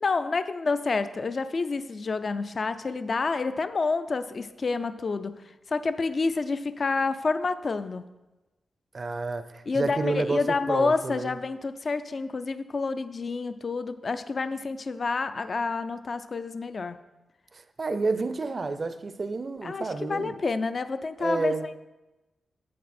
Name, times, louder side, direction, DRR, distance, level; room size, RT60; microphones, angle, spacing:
voice 1, 0.0-5.4 5.7-8.1 9.7-17.0 19.6-21.8, left 4 dB, 45° left, 0.4 m, -28 dB
voice 2, 8.9-11.3 17.8-20.4 21.2-21.7, right 3 dB, 40° right, 0.5 m, -30 dB
8.4 x 7.5 x 4.3 m
wide cardioid pair, 115°, 0 cm